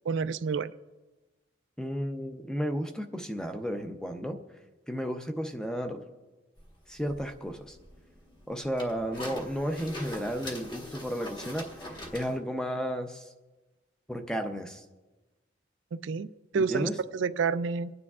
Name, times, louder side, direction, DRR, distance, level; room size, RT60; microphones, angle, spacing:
voice 1, 0.0-0.7 15.9-16.3 16.5-17.9, right 5 dB, 80° right, 13 dB, 0.4 m, -29 dB
voice 2, 1.8-4.4 4.9-6.0 6.9-7.8 8.5-13.3 14.1-14.8 16.5-17.0, equal, 5° left, 5 dB, 0.6 m, -33 dB
sound 1, 6.6-12.4, left 1 dB, 25° left, 1.3 m, -42 dB
28.0 x 9.6 x 2.4 m, 1.2 s
head